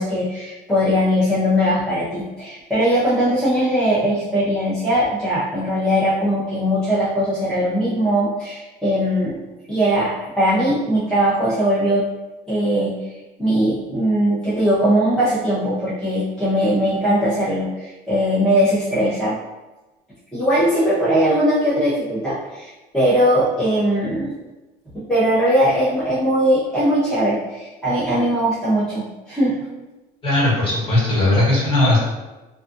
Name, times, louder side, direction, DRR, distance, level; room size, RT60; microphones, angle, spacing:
voice 1, 0.0-9.4 9.7-12.0 12.5-12.9 13.4-19.4 20.3-24.3 24.9-29.6, equal, 5° left, -11 dB, 0.6 m, -20 dB
voice 2, 30.2-32.0, left 2 dB, 30° left, -6 dB, 1.2 m, -18 dB
2.6 x 2.4 x 2.5 m, 1.1 s
cardioid pair, 140°, 17 cm